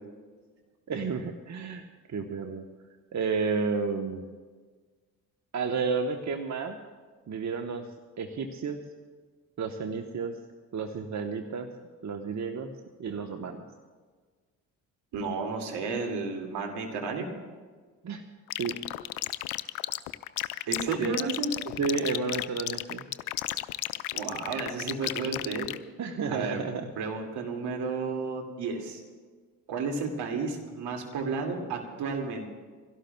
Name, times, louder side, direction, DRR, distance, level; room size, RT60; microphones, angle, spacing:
voice 1, 0.9-2.7 3.1-4.3 5.5-6.8 7.3-7.9 8.2-8.8 9.6-10.4 10.7-11.7 12.0-12.7 13.0-13.7 18.0-18.2 18.6-18.8 21.0-21.3 21.6-23.1 26.0-26.9, right 5 dB, 40° right, 5 dB, 1.1 m, -31 dB
voice 2, 15.1-17.3 20.7-21.5 24.1-25.7 26.3-26.6 27.0-29.0 29.7-32.4, right 4 dB, 60° right, 2 dB, 2.4 m, -32 dB
sound 1, 18.5-25.8, left 18 dB, 75° left, 0.6 m, -33 dB
25.5 x 16.5 x 2.3 m, 1.5 s
hypercardioid pair, 45°, 44 cm